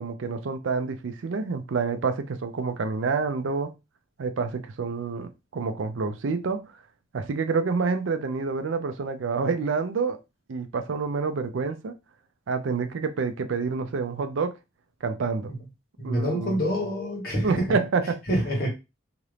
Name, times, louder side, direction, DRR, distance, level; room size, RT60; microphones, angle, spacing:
voice 1, 0.0-3.7 4.2-6.7 7.1-10.2 10.5-11.9 12.5-14.5 15.0-15.5 16.0-16.6 17.4-18.2, right 4 dB, 80° right, 0.4 m, -28 dB
voice 2, 16.0-17.8 18.3-18.7, equal, 50° left, 1.4 m, -27 dB
2.9 x 2.5 x 3.2 m
head